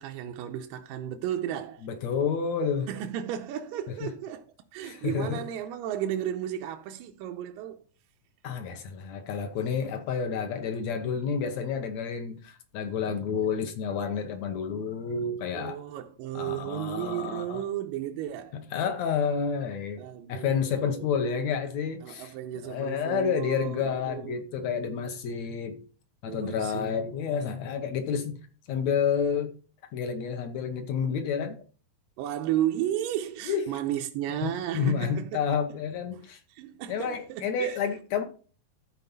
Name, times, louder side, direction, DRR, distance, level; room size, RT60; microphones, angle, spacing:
voice 1, 0.0-1.9 2.9-4.4 4.7-7.8 15.5-18.6 20.0-21.2 22.0-24.4 26.2-27.1 32.2-35.4 36.1-36.2 36.5-37.8, right 11 dB, 90° right, 2.4 m, -34 dB
voice 2, 1.8-2.9 4.0-4.1 4.8-5.4 8.4-15.8 16.3-17.6 18.5-20.0 20.3-22.3 22.6-25.8 26.2-28.4 28.7-29.5 29.9-31.6 33.5-33.8 34.4-36.4 36.9-38.2, left 6 dB, 65° left, 1.9 m, -30 dB
13.0 x 4.6 x 5.4 m
omnidirectional pair, 4.0 m